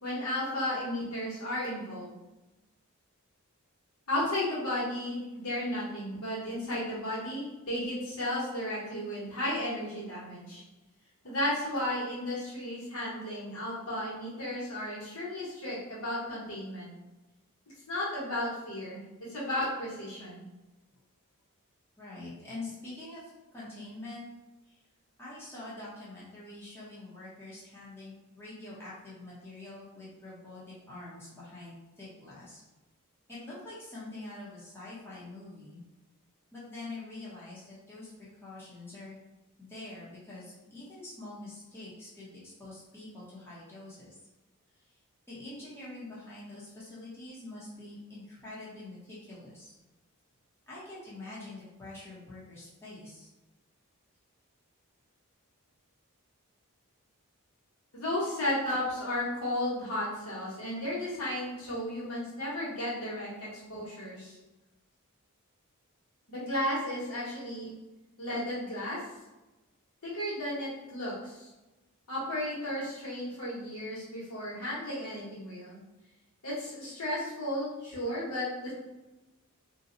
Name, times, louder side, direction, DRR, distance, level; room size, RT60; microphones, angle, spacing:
voice 1, 0.0-2.1 4.1-10.6 11.2-16.9 17.9-19.0 19.3-20.4 57.9-64.4 66.3-67.7 68.2-69.0 70.0-71.5 72.1-75.8 76.4-78.7, left 1 dB, 70° left, -7 dB, 1.4 m, -34 dB
voice 2, 22.0-24.3 24.7-24.8 25.2-32.6 33.3-35.8 36.5-38.1 38.4-39.2 39.6-44.2 45.3-49.7 50.7-53.3, left 2 dB, 10° left, -9 dB, 0.9 m, -45 dB
2.7 x 2.2 x 3.8 m, 1.0 s
head